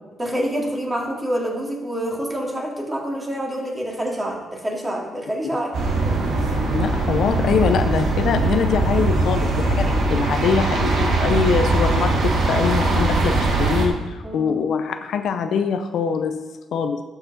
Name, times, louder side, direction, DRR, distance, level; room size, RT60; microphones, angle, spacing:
voice 1, 0.2-5.7 14.2-14.6, right 1 dB, 15° right, -2 dB, 2.7 m, -27 dB
sound 1, 5.7-13.9, right 2 dB, 70° right, 1.8 m, -21 dB
voice 2, 6.7-12.2 12.5-16.4 16.7-17.0, left 6 dB, 70° left, 8 dB, 0.7 m, -23 dB
12.5 x 5.8 x 4.3 m, 1.2 s
cardioid pair, 90°, 0 cm